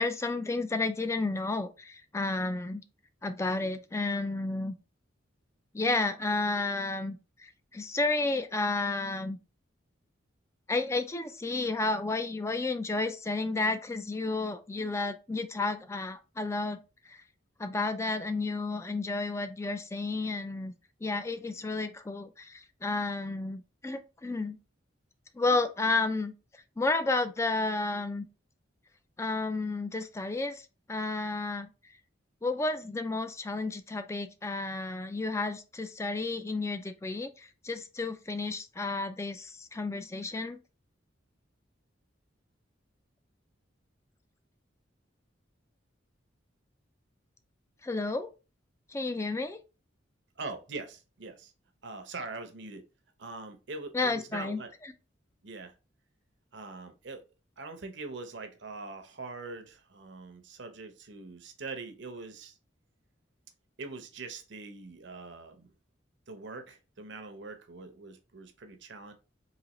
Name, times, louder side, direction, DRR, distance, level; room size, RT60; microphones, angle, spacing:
voice 1, 0.0-2.8 3.2-4.7 5.7-9.4 10.7-16.8 17.1-17.2 17.6-20.7 21.0-24.6 25.3-26.3 26.8-28.3 29.2-31.7 32.4-40.6 47.8-48.3 48.9-49.6 53.9-54.6, left 3 dB, 15° left, 0.3 m, -31 dB
voice 2, 50.4-51.5 51.8-52.8 53.2-54.7 55.4-55.7 56.5-57.2 57.6-62.6 63.8-65.7 66.3-69.1, right 3 dB, 65° right, 0.7 m, -43 dB
4.0 x 2.8 x 3.0 m
head